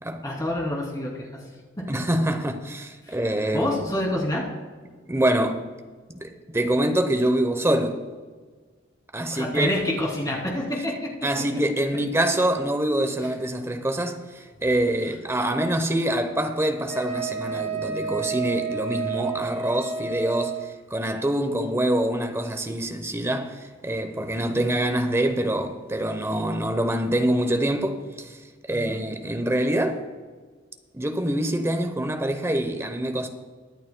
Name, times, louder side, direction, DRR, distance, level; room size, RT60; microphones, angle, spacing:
voice 1, 0.2-1.4 1.9-2.0 3.1-3.2 3.5-4.5 9.3-10.9 28.7-29.0, left 1 dB, 20° left, 2.8 m, -27 dB
voice 2, 1.9-3.8 5.1-5.6 6.1-8.0 9.1-9.7 11.2-20.6 20.9-28.4 28.7-30.0 30.9-33.3, right 1 dB, 15° right, 0.8 m, -25 dB
Wind instrument woodwind instrument, 16.9-20.7, right 5 dB, 60° right, 3.0 m, -30 dB
23.0 x 9.3 x 2.2 m
head